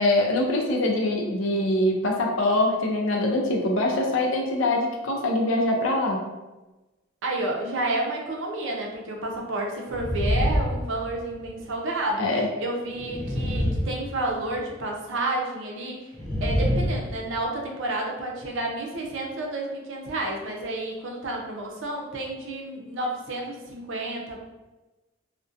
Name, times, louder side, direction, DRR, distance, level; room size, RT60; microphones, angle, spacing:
voice 1, 0.0-6.3 12.2-12.5, left 1 dB, 75° left, 1 dB, 0.5 m, -23 dB
voice 2, 7.2-12.2 12.6-16.1 16.4-24.4, right 2 dB, 65° right, 0 dB, 0.5 m, -30 dB
sound 1, 9.9-11.5 12.9-14.6 16.1-17.4, equal, ahead, 0.6 m, -26 dB
2.5 x 2.1 x 2.4 m, 1.1 s
head